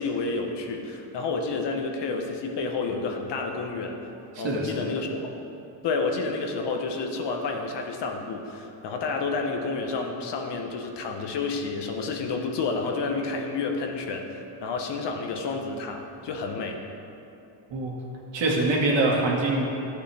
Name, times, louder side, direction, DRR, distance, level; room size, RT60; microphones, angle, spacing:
voice 1, 0.0-4.0 4.4-5.1 5.8-16.8, left 4 dB, 60° left, 3 dB, 1.2 m, -30 dB
voice 2, 4.3-4.9 17.7-17.9 18.3-19.6, right 2 dB, 65° right, -2 dB, 2.1 m, -24 dB
13.0 x 8.2 x 3.5 m, 2.9 s
cardioid pair, 120°, 47 cm